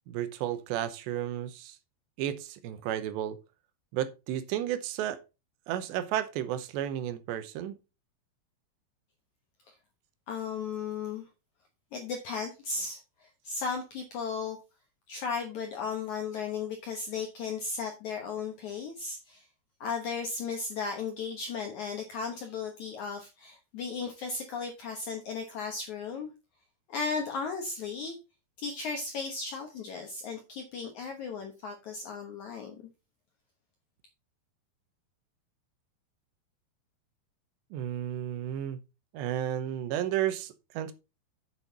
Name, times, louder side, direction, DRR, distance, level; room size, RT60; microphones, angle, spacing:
voice 1, 0.1-1.8 2.2-3.4 3.9-5.2 5.7-7.8 37.7-38.8 39.1-40.9, right 11 dB, 85° right, 3.1 m, -32 dB
voice 2, 10.3-11.2 11.9-14.6 15.1-19.4 19.8-26.3 26.9-28.2 28.6-32.7, left 5 dB, 70° left, 1.8 m, -35 dB
7.8 x 7.1 x 4.0 m
omnidirectional pair, 5.0 m